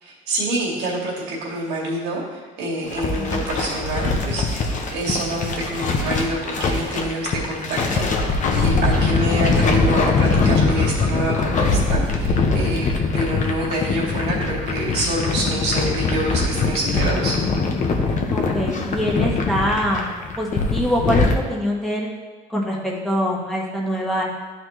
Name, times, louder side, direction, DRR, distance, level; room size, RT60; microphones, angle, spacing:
voice 1, 0.0-17.4, right 1 dB, 80° right, -4 dB, 2.2 m, -27 dB
sound 1, 2.9-21.4, left 4 dB, 45° left, 1.0 m, -22 dB
voice 2, 18.3-20.1 20.4-22.1 22.5-24.2, equal, ahead, -4 dB, 1.5 m, -24 dB
11.5 x 4.3 x 3.1 m, 1.4 s
cardioid pair, 110°, 17 cm